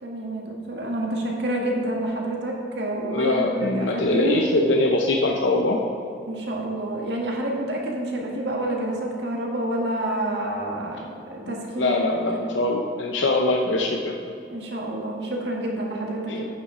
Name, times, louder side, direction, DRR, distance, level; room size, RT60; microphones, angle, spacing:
voice 1, 0.0-4.5 6.3-12.5 14.5-16.5, right 1 dB, 65° right, -1 dB, 1.7 m, -28 dB
voice 2, 3.1-5.8 11.5-14.2 16.3-16.4, left 2 dB, 85° left, 1 dB, 0.7 m, -23 dB
9.2 x 7.0 x 4.9 m, 2.8 s
head